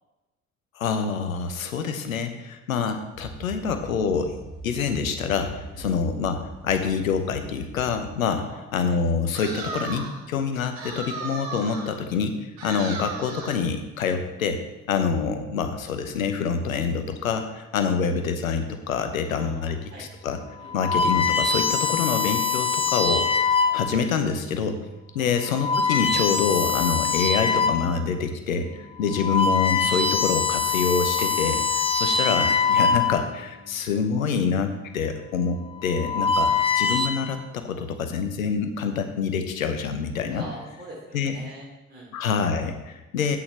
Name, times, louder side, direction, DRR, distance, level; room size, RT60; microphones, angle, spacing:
voice 1, 0.8-4.3 4.6-14.6 14.9-20.4 20.7-23.2 23.7-24.8 25.1-40.4 41.1-41.4 42.1-43.4, left 6 dB, 85° left, 7 dB, 0.8 m, -26 dB
sound 1, 3.1-8.2, right 1 dB, 60° left, 3.3 m, -42 dB
voice 2, 8.3-9.0 10.5-10.6 19.3-20.1 20.6-20.7 25.2-25.3 40.3-42.1, right 1 dB, 25° right, -5 dB, 3.4 m, -44 dB
sound 2, 9.3-10.2 10.8-12.0 12.6-13.7, right 4 dB, 60° right, 1.8 m, -35 dB
sound 3, 19.7-20.0 20.6-24.0 24.7-24.9 25.4-27.9 28.4-28.5 29.0-33.4 34.5-34.8 35.7-37.1, left 5 dB, 15° left, 1.2 m, -23 dB
9.3 x 8.4 x 3.3 m, 1.1 s
figure-of-eight pair, 50°, 40 cm